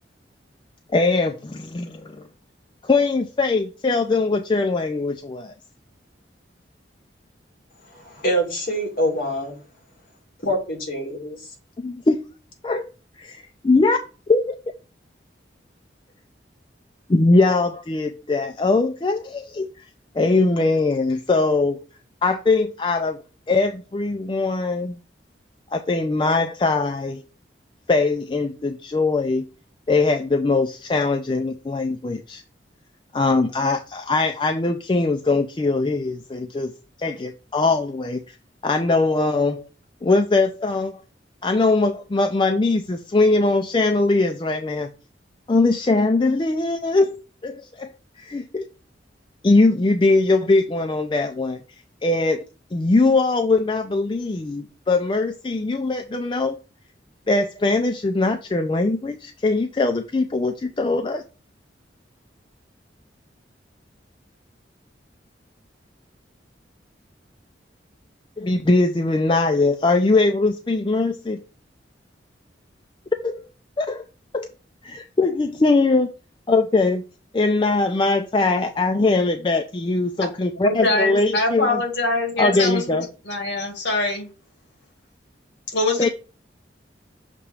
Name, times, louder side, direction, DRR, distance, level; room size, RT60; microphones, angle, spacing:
voice 1, 0.9-2.3 2.8-5.5 11.8-12.2 12.6-12.8 13.2-14.0 14.3-14.5 17.1-19.8 20.1-21.8 22.2-23.2 23.5-25.0 25.7-27.2 27.9-29.4 29.9-32.4 33.1-36.7 37.0-38.2 38.6-39.6 40.0-41.0 41.4-44.9 45.5-47.9 48.2-48.7 49.4-51.6 52.0-52.4 52.7-56.6 57.3-61.2 68.4-71.4 73.2-73.4 73.8-74.0 74.3-74.5 74.8-76.1 76.5-77.0 77.3-81.8 82.4-83.1 86.0-86.1, left 3 dB, 25° left, 6 dB, 0.4 m, -21 dB
voice 2, 8.0-9.5 10.4-11.4, equal, 50° left, 0 dB, 2.3 m, -25 dB
voice 3, 80.6-83.0 83.3-84.3 85.7-86.1, left 2 dB, 70° left, 3 dB, 1.7 m, -23 dB
6.8 x 2.9 x 4.8 m, 0.34 s
head